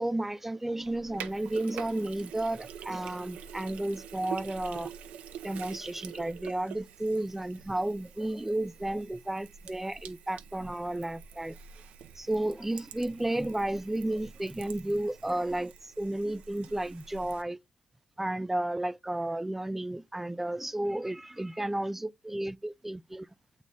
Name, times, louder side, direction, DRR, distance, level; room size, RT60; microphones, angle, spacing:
voice 1, 0.0-4.9 5.4-11.6 12.2-17.6 18.2-23.3, right 1 dB, 10° right, 0.4 m, -32 dB
Sink (filling or washing), 0.8-17.4, right 8 dB, 80° right, 0.7 m, -46 dB
8.1 x 4.1 x 3.4 m
supercardioid pair, 55°, 2 cm